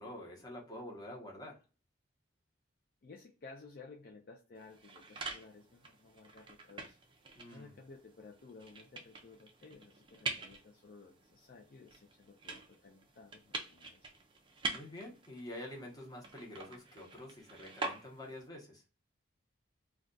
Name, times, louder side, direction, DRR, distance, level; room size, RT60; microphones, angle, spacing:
voice 1, 0.0-1.6 7.4-7.8 14.7-18.8, left 1 dB, 20° left, -1 dB, 0.8 m, -47 dB
voice 2, 3.0-7.0 7.5-14.1, left 3 dB, 45° left, 1 dB, 0.4 m, -55 dB
sound 1, 4.6-18.5, right 3 dB, 25° right, 0.4 m, -46 dB
2.4 x 2.3 x 3.7 m, 0.33 s
head